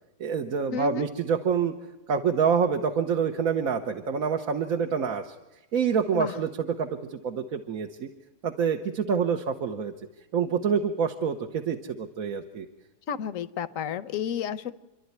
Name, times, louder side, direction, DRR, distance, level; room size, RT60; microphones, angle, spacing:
voice 1, 0.2-1.7 2.1-5.3 5.7-8.1 8.4-9.9 10.3-12.7, right 6 dB, 60° right, 4 dB, 1.4 m, -27 dB
voice 2, 0.7-1.1 6.1-6.4 13.1-14.7, left 7 dB, 55° left, 15 dB, 1.1 m, -31 dB
28.5 x 12.0 x 9.6 m, 1.1 s
omnidirectional pair, 1.8 m